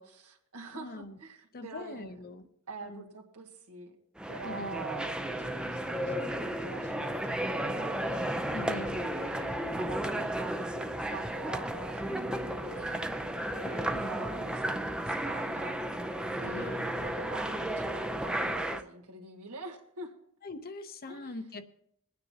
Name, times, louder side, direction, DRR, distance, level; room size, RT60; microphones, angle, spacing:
voice 1, 0.0-2.1 2.7-4.0 4.3-16.1 16.4-20.1 21.1-21.3, right 3 dB, 85° right, 0 dB, 2.0 m, -45 dB
voice 2, 0.7-1.2 1.5-2.4 2.8-3.0 4.4-4.9 8.5-9.0 13.6-14.3 16.4-16.9 20.4-21.6, left 2 dB, 45° left, 9 dB, 0.8 m, -42 dB
sound 1, 4.2-18.8, right 1 dB, 5° right, 0.5 m, -33 dB
22.5 x 9.4 x 2.9 m, 0.72 s
head